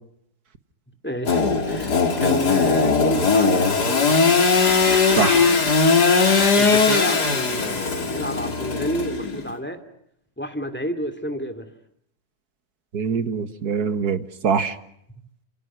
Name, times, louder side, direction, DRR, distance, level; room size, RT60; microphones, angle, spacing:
voice 1, 1.0-4.2 6.6-9.8 10.4-11.7, equal, 5° left, 10 dB, 2.5 m, -29 dB
Engine / Sawing, 1.3-9.5, left 4 dB, 70° left, 3.1 m, -19 dB
voice 2, 12.9-14.8, right 6 dB, 65° right, 11 dB, 2.0 m, -23 dB
29.5 x 28.0 x 6.2 m, 0.72 s
omnidirectional pair, 1.8 m